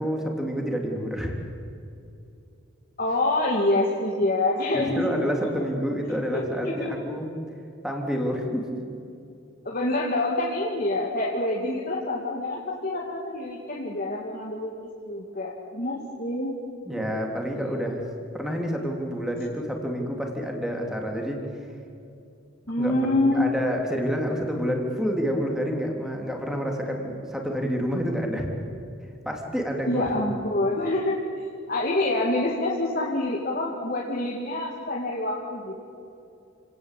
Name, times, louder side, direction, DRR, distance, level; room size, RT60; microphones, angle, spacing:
voice 1, 0.0-1.4 4.7-7.3 7.8-8.6 16.8-18.0 18.3-21.4 22.8-28.5 29.2-30.0, equal, 5° right, 1 dB, 3.3 m, -28 dB
voice 2, 3.0-5.3 6.3-7.0 9.6-14.7 15.1-16.5 16.9-17.3 22.7-23.5 29.9-31.2 31.7-35.8, left 2 dB, 40° left, -3 dB, 2.5 m, -26 dB
29.5 x 18.5 x 8.6 m, 2.7 s
head